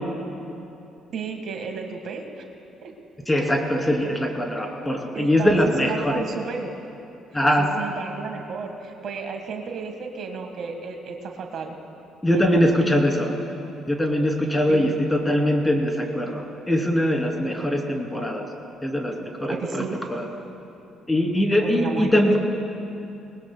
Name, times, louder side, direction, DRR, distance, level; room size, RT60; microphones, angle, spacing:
voice 1, 1.1-2.3 2.8-2.9 4.0-4.1 5.1-6.7 7.6-11.8 12.3-12.9 14.7-14.9 17.4-17.9 19.5-20.0 21.6-22.2, right 5 dB, 60° right, 3 dB, 1.6 m, -33 dB
voice 2, 3.3-6.2 7.3-7.7 12.2-13.3 13.9-18.4 18.8-20.3 21.1-22.4, equal, 10° left, 1 dB, 2.9 m, -22 dB
20.5 x 20.0 x 2.3 m, 2.8 s
supercardioid pair, 65°, 0 cm